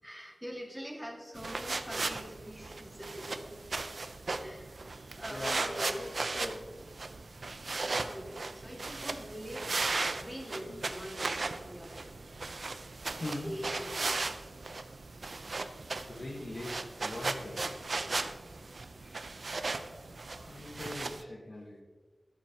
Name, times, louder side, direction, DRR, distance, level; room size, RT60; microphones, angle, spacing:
voice 1, 0.0-3.7 4.1-4.8 5.2-6.1 8.0-9.7 10.2-12.1 13.2-14.2 18.4-18.6 19.0-19.3, equal, 5° right, 1 dB, 1.9 m, -44 dB
sound 1, 1.4-21.2, right 3 dB, 70° right, 0.6 m, -37 dB
voice 2, 5.3-6.1 6.3-6.7 10.7-10.8 13.2-13.5 16.1-17.7 20.2-21.8, left 1 dB, 65° left, -3 dB, 1.5 m, -41 dB
21.0 x 7.4 x 2.9 m, 1.4 s
wide cardioid pair, 70°, 0 cm